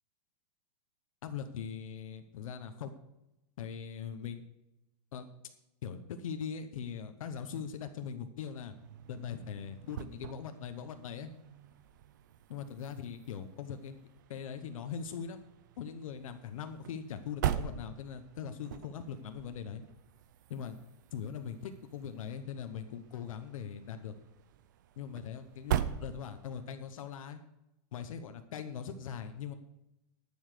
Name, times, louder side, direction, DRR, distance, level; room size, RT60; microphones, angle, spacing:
voice 1, 1.2-2.9 3.6-4.4 5.1-5.3 5.8-8.7 9.1-11.3 12.5-14.0 14.3-15.4 15.8-19.8 20.5-20.8 21.1-24.1 25.0-27.4 27.9-29.5, left 7 dB, 55° left, 8 dB, 0.9 m, -41 dB
sound 1, 8.7-26.7, right 11 dB, 30° right, 0.4 m, -42 dB
11.0 x 7.2 x 6.6 m, 0.91 s
supercardioid pair, 180°, 21 cm